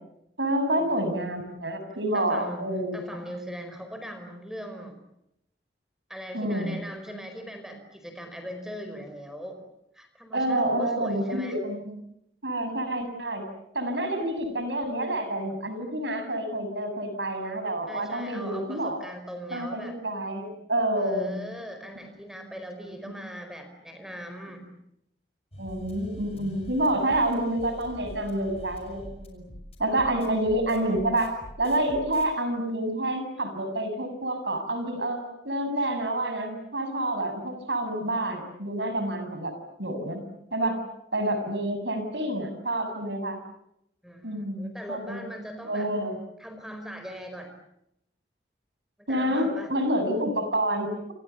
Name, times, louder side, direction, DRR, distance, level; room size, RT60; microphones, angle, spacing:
voice 1, 0.4-3.0 6.3-6.8 10.3-12.0 12.4-13.5 13.7-19.0 19.5-21.4 22.9-23.0 25.6-29.4 29.8-31.3 31.6-39.5 39.8-40.2 40.5-40.8 41.1-43.4 44.2-45.2 45.6-46.2 49.1-51.1, right 1 dB, 75° right, 8 dB, 7.1 m, -28 dB
voice 2, 2.1-2.7 2.9-5.0 6.1-9.6 9.9-11.6 17.9-20.0 21.0-24.7 44.0-45.9 46.4-47.5 49.1-49.7, equal, 5° right, 6 dB, 4.9 m, -40 dB
sound 1, 25.5-32.2, equal, 35° left, 5.8 m, -45 dB
28.5 x 27.0 x 7.1 m, 0.79 s
head